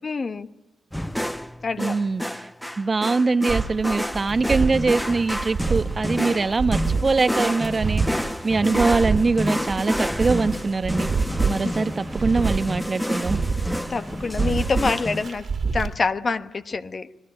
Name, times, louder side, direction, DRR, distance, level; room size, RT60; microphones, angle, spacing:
voice 1, 0.0-0.5 1.6-2.0 6.4-6.5 11.6-11.7 13.9-15.5 15.7-17.1, left 4 dB, 45° left, 1.3 m, -26 dB
sound 1, 0.9-15.3, equal, 5° left, 1.0 m, -29 dB
voice 2, 1.8-2.4 2.8-11.1 11.5-13.4, right 4 dB, 40° right, 1.0 m, -23 dB
sound 2, 3.5-15.9, right 5 dB, 55° right, 2.3 m, -28 dB
26.0 x 19.0 x 9.9 m
supercardioid pair, 50°, 0 cm